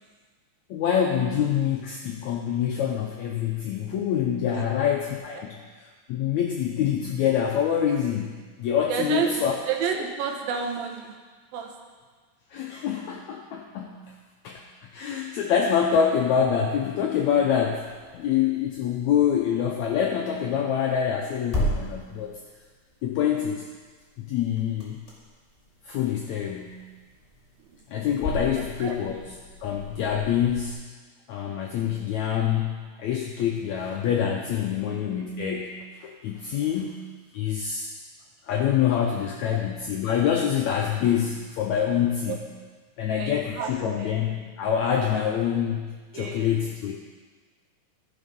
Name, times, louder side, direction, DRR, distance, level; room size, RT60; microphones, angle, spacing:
voice 1, 0.7-5.6 6.1-9.6 12.5-14.1 14.4-14.6 14.9-17.9 18.1-22.3 23.0-23.6 24.2-25.0 25.9-26.8 27.9-30.8 31.3-37.0 37.3-37.9 38.5-42.4 43.0-46.9, left 8 dB, 75° left, 0 dB, 1.7 m, -26 dB
voice 2, 8.9-11.2 11.5-11.7 27.6-27.7 28.6-29.0 36.5-36.7 39.5-39.6 42.3-42.4 43.1-44.2 46.1-46.5, right 7 dB, 85° right, 2 dB, 2.9 m, -31 dB
sound 1, 17.6-30.7, equal, 15° left, 1.9 m, -37 dB
13.5 x 6.4 x 5.3 m, 1.5 s
omnidirectional pair, 4.0 m